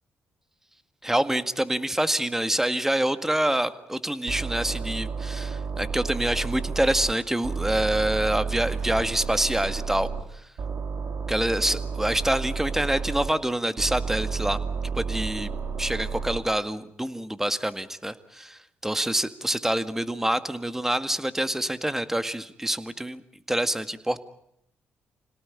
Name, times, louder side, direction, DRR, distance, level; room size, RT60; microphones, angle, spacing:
voice 1, 1.0-10.1 11.3-14.6 15.0-15.5 15.8-23.2 23.5-24.2, right 1 dB, 10° right, 11 dB, 1.9 m, -26 dB
sound 1, 4.3-7.1 7.4-10.2 10.6-13.3 13.8-16.4, right 5 dB, 60° right, 2.9 m, -31 dB
26.5 x 18.5 x 9.8 m, 0.76 s
supercardioid pair, 65°, 5 cm